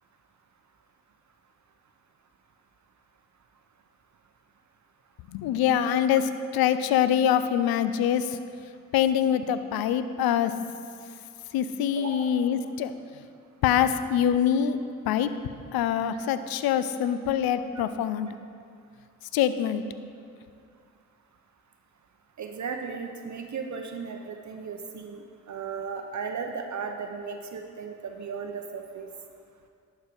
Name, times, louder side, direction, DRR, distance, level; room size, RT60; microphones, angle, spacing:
voice 1, 5.3-6.3 6.5-8.4 8.9-10.5 11.5-12.9 13.6-14.8 15.1-15.3 15.7-18.3 19.3-19.8, left 9 dB, 75° left, 12 dB, 0.5 m, -24 dB
voice 2, 12.0-12.3 22.4-25.2 25.5-29.1, right 5 dB, 50° right, 4 dB, 0.7 m, -36 dB
11.0 x 4.6 x 5.0 m, 2.2 s
hypercardioid pair, 40°, 37 cm